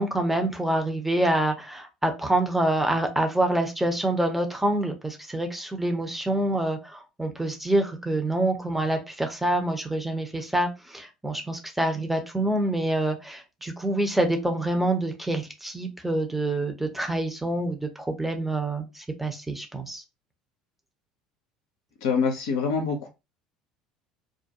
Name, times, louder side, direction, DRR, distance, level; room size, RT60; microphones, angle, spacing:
voice 1, 0.0-20.0, right 1 dB, 5° right, 0.7 m, -26 dB
voice 2, 22.0-23.1, left 5 dB, 65° left, 0.5 m, -25 dB
2.3 x 2.1 x 2.8 m
figure-of-eight pair, 65°, 3 cm